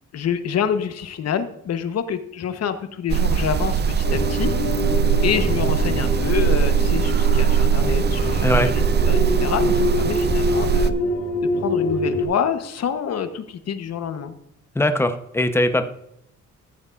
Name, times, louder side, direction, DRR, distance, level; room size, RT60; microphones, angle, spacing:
voice 1, 0.1-4.5 5.2-10.9 11.4-14.3, left 8 dB, 55° left, 9 dB, 1.0 m, -27 dB
sound 1, 3.1-10.9, right 7 dB, 35° right, 0.6 m, -20 dB
sound 2, 4.0-12.2, left 2 dB, 85° left, 3.4 m, -25 dB
voice 2, 14.7-15.8, left 1 dB, 10° left, 8 dB, 0.8 m, -20 dB
14.0 x 8.0 x 2.5 m, 0.78 s
cardioid pair, 90°, 30 cm